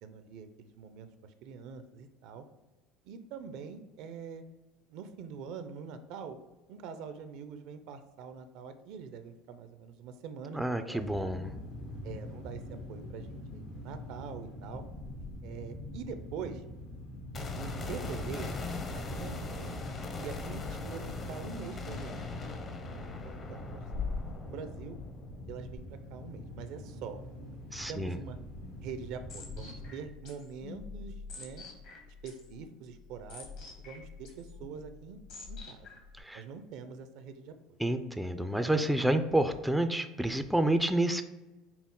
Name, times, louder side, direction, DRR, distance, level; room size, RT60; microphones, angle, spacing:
voice 1, 0.0-2.4 3.0-4.4 4.9-6.4 6.7-11.3 12.0-14.8 15.4-16.6 17.6-18.5 18.9-19.8 20.2-22.2 22.8-23.8 24.2-25.0 25.5-28.4 28.8-31.6 32.1-33.5 33.8-35.2 35.5-35.9 36.3-37.8, right 6 dB, 70° right, 10 dB, 0.5 m, -44 dB
voice 2, 10.5-11.5 27.7-28.2 36.2-36.4 37.8-41.2, right 1 dB, 5° right, 8 dB, 0.3 m, -29 dB
sound 1, 11.0-29.9, left 2 dB, 85° left, 1.3 m, -44 dB
sound 2, 17.3-27.3 27.6-27.7, left 3 dB, 35° left, 0.6 m, -41 dB
sound 3, 28.3-36.2, left 4 dB, 65° left, 1.3 m, -48 dB
5.8 x 2.0 x 3.7 m, 1.1 s
supercardioid pair, 105°, 0 cm